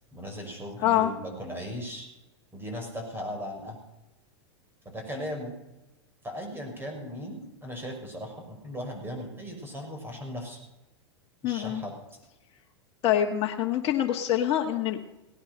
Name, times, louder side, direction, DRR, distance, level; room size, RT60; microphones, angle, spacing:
voice 1, 0.1-2.1 2.5-3.8 4.9-5.5 6.2-10.6 11.4-11.9, equal, 15° right, 3 dB, 5.7 m, -37 dB
voice 2, 11.4-11.8 13.0-15.0, left 11 dB, 40° left, 1 dB, 1.6 m, -25 dB
18.0 x 10.0 x 6.6 m, 0.98 s
hypercardioid pair, 100°, 14 cm